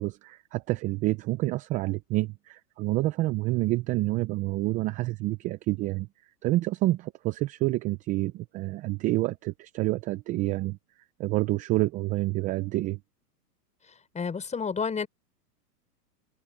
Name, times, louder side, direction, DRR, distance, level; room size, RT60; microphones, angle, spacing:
voice 1, 0.0-6.1 6.4-10.8 11.2-13.0, right 18 dB, 15° right, 0.5 m, -28 dB
voice 2, 14.1-15.1, left 5 dB, 15° left, 5.8 m, -30 dB
hypercardioid pair, 125°, 48 cm